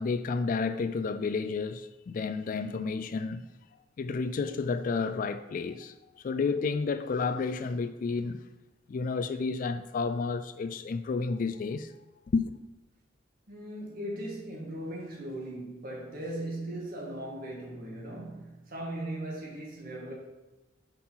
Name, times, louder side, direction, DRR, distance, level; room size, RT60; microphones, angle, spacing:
voice 1, 0.0-3.4 4.0-8.4 8.9-11.9 12.3-12.5, left 4 dB, 45° left, 0.3 m, -31 dB
voice 2, 13.5-20.1, right 1 dB, 50° right, 2.0 m, -38 dB
5.5 x 4.5 x 5.7 m
head